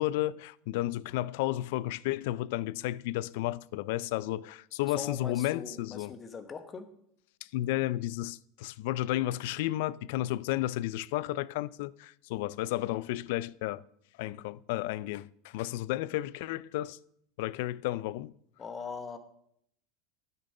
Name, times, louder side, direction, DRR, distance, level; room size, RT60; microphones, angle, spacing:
voice 1, 0.0-6.1 7.5-13.8 14.2-17.0 17.4-18.3, left 15 dB, 60° left, 0.3 m, -32 dB
voice 2, 4.9-6.9 18.6-19.2, left 5 dB, 20° left, 1.0 m, -41 dB
12.0 x 6.6 x 5.4 m
supercardioid pair, 155°, 0 cm